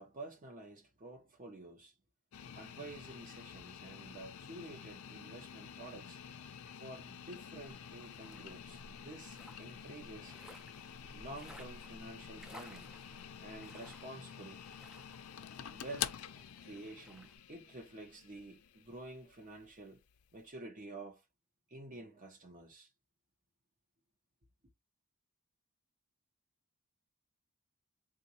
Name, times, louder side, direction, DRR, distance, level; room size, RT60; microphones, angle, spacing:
voice 1, 0.0-1.9 2.5-6.2 6.7-10.4 11.1-12.9 13.4-14.6 15.7-16.2 16.6-20.0 20.3-21.2 21.7-22.9, right 2 dB, 40° right, 0.8 m, -50 dB
sound 1, 2.3-20.4, left 9 dB, 85° left, 0.4 m, -48 dB
sound 2, 7.5-17.4, equal, 5° right, 0.5 m, -58 dB
3.9 x 2.5 x 2.7 m
head